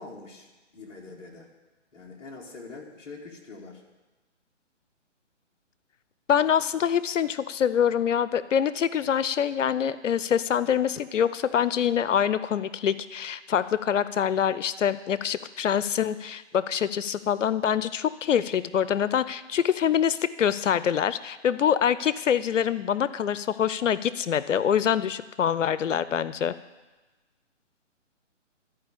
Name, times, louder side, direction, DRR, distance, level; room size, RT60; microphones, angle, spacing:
voice 1, 0.0-1.5 1.9-3.8, left 3 dB, 15° left, -5 dB, 1.3 m, -44 dB
voice 2, 6.3-26.5, left 8 dB, 80° left, 15 dB, 0.5 m, -25 dB
13.0 x 5.0 x 8.4 m, 1.2 s
hypercardioid pair, 160°, 37 cm